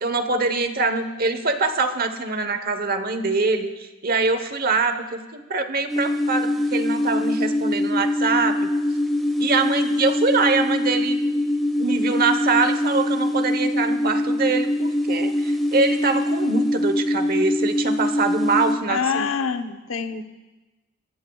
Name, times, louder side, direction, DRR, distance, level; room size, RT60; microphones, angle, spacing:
voice 1, 0.0-8.7 9.4-11.2 11.8-19.3, right 4 dB, 45° right, 9 dB, 1.0 m, -24 dB
sound 1, 5.9-18.7, left 1 dB, ahead, 1.7 m, -23 dB
voice 2, 18.9-20.2, left 6 dB, 90° left, 7 dB, 0.9 m, -25 dB
25.0 x 14.5 x 2.4 m, 1.1 s
head